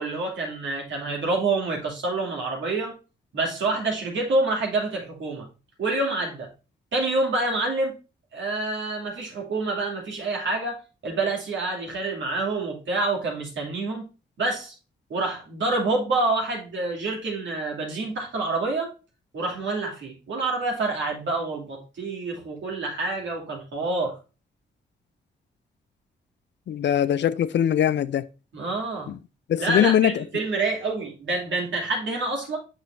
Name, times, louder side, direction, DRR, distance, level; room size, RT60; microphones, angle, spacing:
voice 1, 0.0-2.9 3.3-5.5 5.8-6.5 6.9-7.9 8.3-14.0 14.4-14.7 15.1-18.9 19.3-24.2 28.5-29.1 29.6-32.6, right 2 dB, 70° right, 2.6 m, -27 dB
voice 2, 26.7-28.3 29.1-29.2 29.5-30.2, left 10 dB, 60° left, 0.5 m, -22 dB
6.7 x 6.0 x 2.6 m
supercardioid pair, 45°, 20 cm